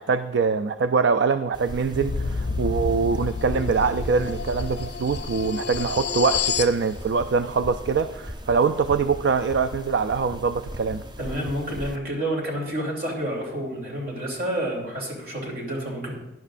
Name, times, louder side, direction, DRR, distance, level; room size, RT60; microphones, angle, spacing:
voice 1, 0.0-11.0, right 5 dB, 70° right, 11 dB, 0.4 m, -23 dB
sound 1, 1.5-12.0, equal, 25° right, 0.6 m, -38 dB
sound 2, 1.9-6.8, left 5 dB, 60° left, 0.5 m, -29 dB
voice 2, 11.2-16.2, right 1 dB, 50° right, -1 dB, 3.0 m, -29 dB
16.5 x 10.5 x 2.5 m, 0.90 s
head